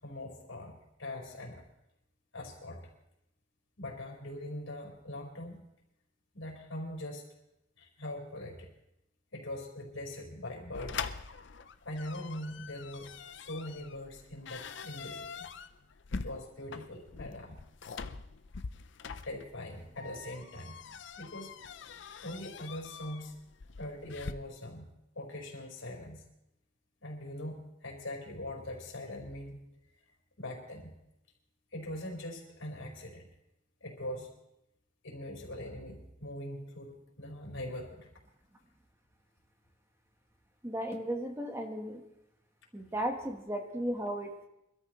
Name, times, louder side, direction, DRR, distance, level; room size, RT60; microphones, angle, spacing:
voice 1, 0.0-1.6 2.3-2.8 3.8-5.6 6.3-7.2 7.8-8.7 9.3-11.1 11.8-13.1 13.4-15.5 16.1-17.6 19.2-20.8 21.2-21.5 22.2-23.3 23.8-24.9 25.1-26.2 27.0-29.6 30.4-30.9 31.7-33.3 33.8-34.3 35.0-38.1, left 1 dB, 85° left, -1 dB, 4.3 m, -42 dB
sound 1, 10.7-24.3, left 5 dB, 60° left, 0.6 m, -44 dB
voice 2, 40.6-42.0 42.7-44.5, right 1 dB, 15° right, 3 dB, 1.2 m, -35 dB
24.5 x 13.0 x 3.1 m, 0.86 s
head